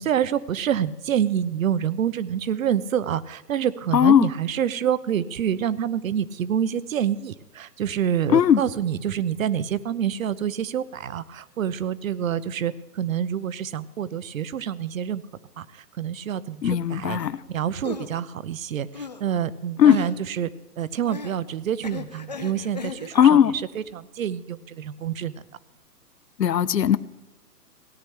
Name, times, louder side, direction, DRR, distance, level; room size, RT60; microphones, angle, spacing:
voice 1, 0.0-15.2 15.6-15.7 16.0-17.2 17.5-20.5 20.8-23.1 23.9-25.3, right 9 dB, 55° right, 17 dB, 0.7 m, -27 dB
voice 2, 3.9-4.3 8.3-8.6 16.6-17.4 19.8-20.0 23.1-23.5 26.4-27.0, left 9 dB, 90° left, 17 dB, 0.7 m, -17 dB
sound 1, 17.2-17.3 17.8-18.1 18.9-19.2 19.9-20.2 21.1-21.4 21.8-23.3, left 4 dB, 30° left, 0.4 m, -36 dB
17.5 x 10.5 x 3.3 m, 1.0 s
hypercardioid pair, 140°, 48 cm